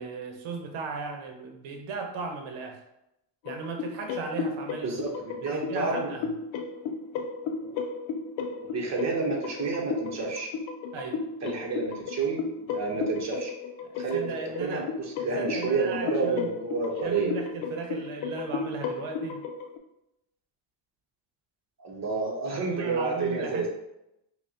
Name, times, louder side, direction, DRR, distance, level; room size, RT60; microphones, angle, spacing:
voice 1, 0.0-2.8 3.4-5.2 5.4-6.3 10.9-11.2 13.8-14.8 15.2-16.5 17.0-19.4 22.6-23.7, right 4 dB, 85° right, 3 dB, 0.9 m, -36 dB
sound 1, 3.5-19.8, left 5 dB, 75° left, 0.6 m, -34 dB
voice 2, 4.8-6.1 7.5-7.8 8.6-10.5 11.4-13.5 14.0-14.3 14.6-17.3 21.8-23.7, right 4 dB, 35° right, -2 dB, 1.0 m, -30 dB
5.4 x 2.3 x 2.8 m, 0.84 s
cardioid pair, 140°, 46 cm